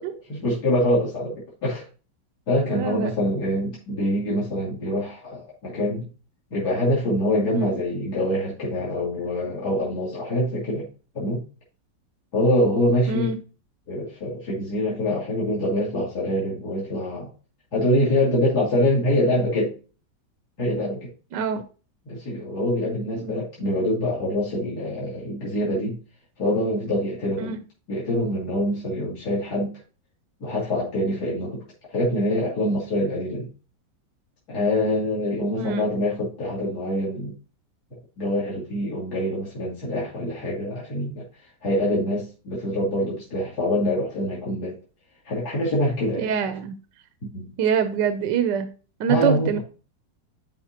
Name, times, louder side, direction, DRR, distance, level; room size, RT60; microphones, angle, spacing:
voice 1, 0.0-1.8 2.5-6.1 6.5-10.9 11.1-11.4 12.3-13.3 13.9-17.3 17.7-19.7 20.6-21.1 22.1-26.0 26.4-27.5 27.9-29.7 30.4-31.6 31.9-33.5 34.5-37.3 38.2-41.2 41.6-44.7 45.2-46.3 47.3-47.5 49.1-49.6, left 1 dB, 60° left, -6 dB, 3.1 m, -25 dB
voice 2, 2.7-3.1 7.5-7.7 13.1-13.3 21.3-21.6 23.2-23.4 27.4-27.6 35.6-35.8 46.1-46.8 47.6-48.7 49.0-49.6, right 7 dB, 75° right, 9 dB, 1.4 m, -24 dB
11.0 x 5.0 x 2.8 m, 0.35 s
omnidirectional pair, 1.9 m